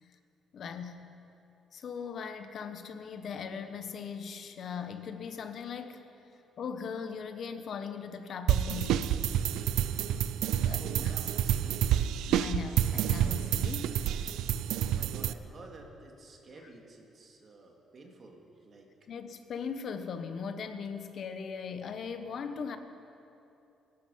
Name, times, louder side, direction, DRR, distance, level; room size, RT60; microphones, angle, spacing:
voice 1, 0.5-1.1 1.7-6.1 6.6-9.3 10.6-11.1 12.3-14.2 19.1-22.8, left 6 dB, 60° left, 8 dB, 1.0 m, -39 dB
sound 1, 8.5-15.3, right 10 dB, 90° right, 0.5 m, -29 dB
voice 2, 10.8-12.1 14.8-18.9, right 2 dB, 50° right, 1 dB, 2.4 m, -51 dB
18.5 x 11.5 x 5.6 m, 2.8 s
cardioid pair, 90°, 0 cm